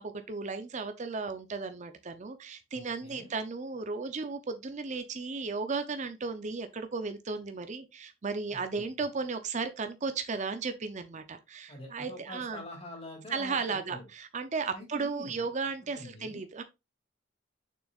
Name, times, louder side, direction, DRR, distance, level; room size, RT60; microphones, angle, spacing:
voice 1, 0.0-12.6 13.3-16.6, right 4 dB, 35° right, 0.6 m, -35 dB
voice 2, 2.7-3.3 8.5-8.6 11.7-14.0 14.7-15.4 15.9-16.4, left 1 dB, 30° left, 2.3 m, -45 dB
6.7 x 6.2 x 2.4 m
head